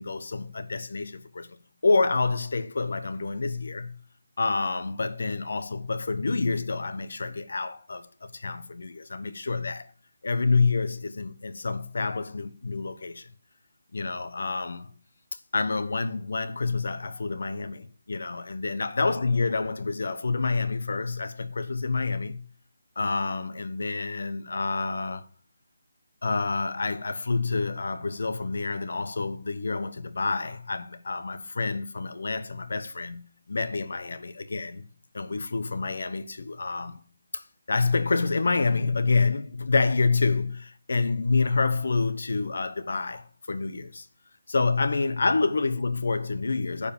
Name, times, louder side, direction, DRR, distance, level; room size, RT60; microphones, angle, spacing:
voice 1, 0.0-1.6 1.8-4.0 4.4-9.9 10.2-13.3 13.9-14.9 15.5-22.5 23.0-25.3 26.2-34.8 35.1-37.0 37.3-44.1 44.5-46.9, left 3 dB, 60° left, 1.1 m, -28 dB
9.8 x 5.0 x 6.8 m
hypercardioid pair, 175°, 0 cm